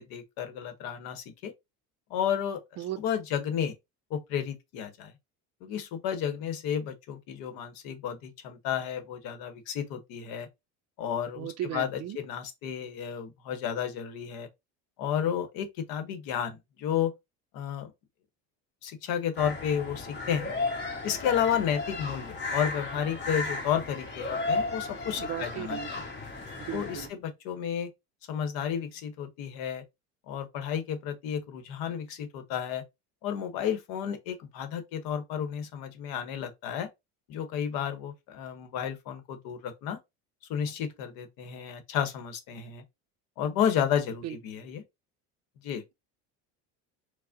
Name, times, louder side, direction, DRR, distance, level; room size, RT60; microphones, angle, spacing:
voice 1, 0.0-1.5 2.1-2.6 3.0-3.7 4.1-5.1 5.6-10.5 11.0-14.5 15.0-17.1 17.5-17.9 18.8-20.5 21.0-26.0 26.7-27.9 28.3-29.8 30.3-32.8 33.2-36.9 37.3-40.0 40.5-42.8 43.4-44.8 45.6-45.8, left 8 dB, 65° left, 0.9 m, -32 dB
voice 2, 11.4-12.2 25.2-25.9 26.6-27.1 44.2-44.4, right 12 dB, 45° right, 0.4 m, -36 dB
sound 1, 19.4-27.1, left 3 dB, 25° left, 1.1 m, -34 dB
4.6 x 2.1 x 2.6 m
supercardioid pair, 115°, 37 cm